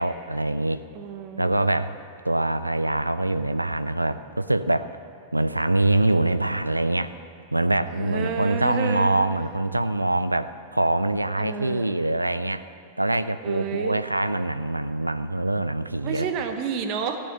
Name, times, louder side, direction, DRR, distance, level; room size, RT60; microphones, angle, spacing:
voice 1, 0.0-0.8 1.4-1.9 2.2-5.0 5.3-7.1 7.5-12.7 13.0-16.3, right 2 dB, 85° right, 13 dB, 0.4 m, -24 dB
voice 2, 0.9-1.6 7.9-9.2 11.4-11.9 13.4-14.0 16.0-17.2, right 6 dB, 40° right, 6 dB, 1.0 m, -30 dB
15.5 x 6.5 x 8.8 m, 2.3 s
figure-of-eight pair, 95°, 0 cm